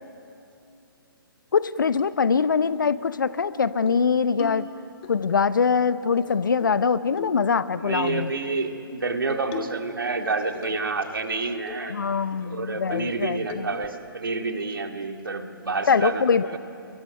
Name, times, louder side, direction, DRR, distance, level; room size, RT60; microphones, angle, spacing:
voice 1, 1.5-4.7 5.1-8.3 11.9-13.7 15.9-16.5, left 5 dB, 60° left, 16 dB, 0.8 m, -23 dB
sound 1, 2.0-2.1 2.6-2.8 3.2-3.3 3.6-4.0 4.4-5.1 6.2-6.8 7.2-7.5 8.1-8.3 9.3-9.9 10.2-10.9 11.2-11.3 11.7-11.9 12.3-12.4 12.9-13.2 13.5-13.9, left 8 dB, 25° left, 1.3 m, -38 dB
voice 2, 7.8-12.0 12.4-16.6, right 3 dB, 65° right, 5 dB, 2.1 m, -29 dB
29.5 x 23.0 x 5.8 m, 2.7 s
figure-of-eight pair, 130°, 12 cm